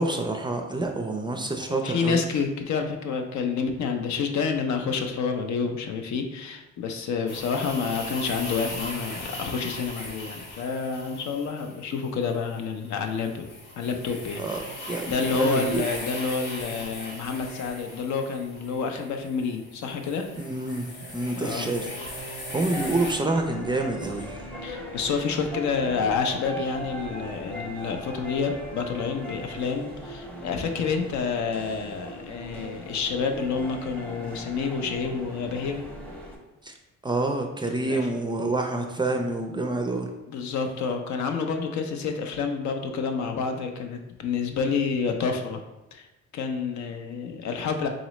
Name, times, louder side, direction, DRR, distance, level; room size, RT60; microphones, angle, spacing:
voice 1, 0.0-2.3 14.4-15.8 20.4-22.2 22.5-24.4 36.6-36.7 37.0-40.1, right 2 dB, 15° right, 3 dB, 0.4 m, -28 dB
voice 2, 1.7-13.5 13.8-14.4 15.1-20.3 21.4-21.8 24.6-35.8 37.7-38.0 40.3-45.6 45.9-46.0 46.3-47.9, left 5 dB, 70° left, 5 dB, 0.6 m, -29 dB
sound 1, 7.3-23.1, left 1 dB, 85° left, 1.1 m, -38 dB
sound 2, 22.7-36.4, equal, 5° left, 0.8 m, -39 dB
3.9 x 3.0 x 3.0 m, 0.99 s
cardioid pair, 90°, 30 cm